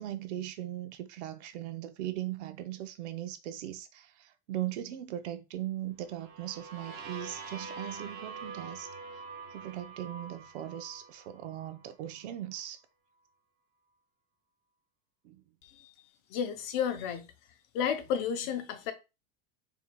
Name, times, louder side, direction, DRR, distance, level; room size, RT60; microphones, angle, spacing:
voice 1, 0.0-8.9 9.5-12.8 15.2-15.4, right 13 dB, 70° right, 0.7 m, -39 dB
sound 1, 6.1-11.9, right 4 dB, 30° right, 0.8 m, -45 dB
voice 2, 16.3-17.3 17.7-18.9, left 8 dB, 40° left, 0.6 m, -32 dB
4.4 x 3.6 x 2.2 m
supercardioid pair, 170°, 36 cm